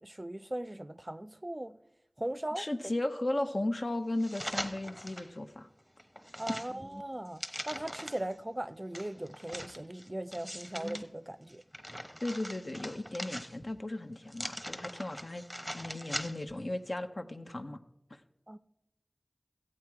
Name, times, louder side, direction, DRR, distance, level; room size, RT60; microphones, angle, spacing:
voice 1, 0.0-1.8 2.2-2.7 6.4-11.6 18.5-18.6, right 1 dB, 30° right, 0.5 m, -39 dB
voice 2, 2.6-5.7 12.2-15.4 15.7-17.8, left 1 dB, 60° left, 0.8 m, -35 dB
sound 1, 4.2-5.3 5.8-8.3 8.9-11.0 11.5-13.8 14.3-16.6 17.0-17.1, equal, 5° left, 0.9 m, -42 dB
14.5 x 8.7 x 4.7 m
wide cardioid pair, 40°, 0 cm